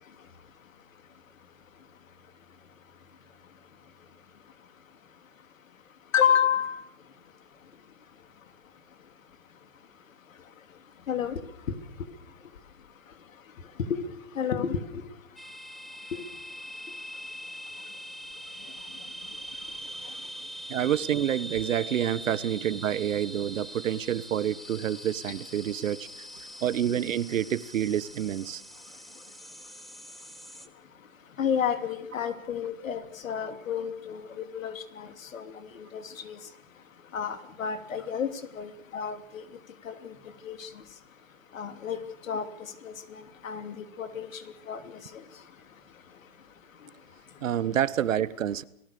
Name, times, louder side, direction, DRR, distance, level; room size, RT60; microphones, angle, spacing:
voice 1, 6.1-6.8 11.1-11.4 13.9-14.0 14.3-15.0 16.1-16.2 31.4-35.5 35.9-36.4 37.1-38.3 38.5-39.4 39.8-40.1 40.5-40.7 41.5-42.0 42.3-42.4 42.8-42.9 43.4-44.4 44.7-44.8 45.1-45.2, left 8 dB, 70° left, 9 dB, 3.1 m, -30 dB
sound 1, 15.4-30.7, equal, ahead, 1.0 m, -42 dB
voice 2, 20.7-26.1 26.6-28.6 47.4-48.6, right 10 dB, 65° right, 18 dB, 1.3 m, -28 dB
29.0 x 19.0 x 6.9 m, 0.73 s
hypercardioid pair, 150°, 41 cm